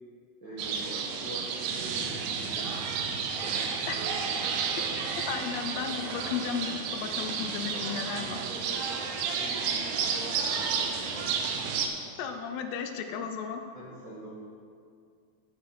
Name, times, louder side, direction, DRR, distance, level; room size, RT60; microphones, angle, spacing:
voice 1, 0.4-3.6 7.7-8.9 9.3-11.2 13.7-14.3, right 1 dB, 65° right, -8 dB, 1.1 m, -45 dB
sound 1, 0.6-11.9, right 6 dB, 85° right, 2.0 m, -31 dB
voice 2, 5.2-8.4 12.2-13.6, left 7 dB, 80° left, 6 dB, 2.7 m, -34 dB
9.4 x 9.2 x 4.2 m, 2.3 s
omnidirectional pair, 5.0 m